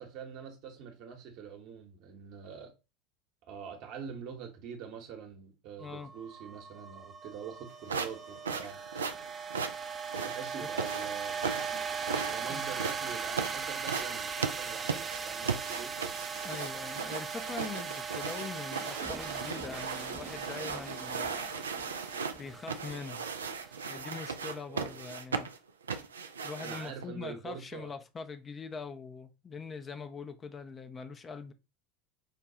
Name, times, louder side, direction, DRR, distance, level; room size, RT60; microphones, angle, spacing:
voice 1, 0.0-2.7 3.5-8.8 10.2-11.4 12.3-15.9 24.7-24.9 26.6-27.9, right 7 dB, 55° right, 1.0 m, -45 dB
voice 2, 5.8-6.1 10.6-10.7 11.7-11.9 12.5-12.6 16.4-21.5 22.4-23.2 23.9-25.5 26.4-31.5, left 5 dB, 25° left, 0.5 m, -43 dB
sound 1, 5.8-24.1, right 6 dB, 25° right, 0.6 m, -39 dB
sound 2, 7.9-27.0, right 5 dB, 80° right, 0.4 m, -37 dB
4.9 x 2.2 x 2.8 m
figure-of-eight pair, 80°, 0 cm